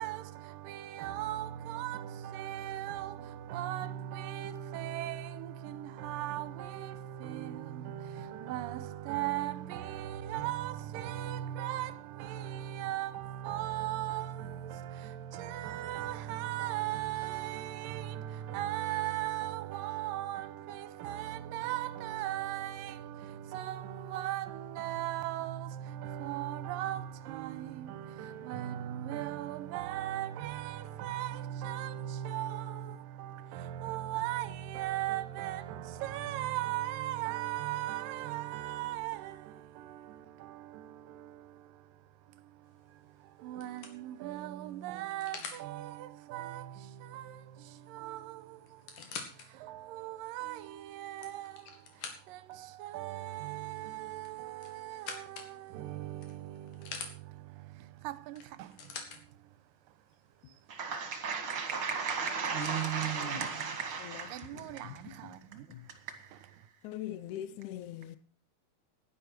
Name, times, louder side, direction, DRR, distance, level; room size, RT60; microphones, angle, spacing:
voice 1, 0.0-59.6 59.9-60.0 60.5-60.7 61.4-61.5 64.3-66.4, right 13 dB, 75° right, 2.3 m, -38 dB
sound 1, 42.7-43.0 43.6-45.7 47.7-47.8 48.1-48.2 48.7-49.5 50.1-50.2 50.9-52.5 54.2-55.5 56.2-57.1 58.4-59.2 60.1-60.2, left 5 dB, 60° left, 3.4 m, -45 dB
voice 2, 60.7-64.5 66.1-66.5, right 6 dB, 45° right, 2.0 m, -34 dB
voice 3, 64.0-65.4 65.7-65.9 66.8-68.2, left 12 dB, 80° left, 1.8 m, -43 dB
11.0 x 10.5 x 6.0 m
omnidirectional pair, 4.4 m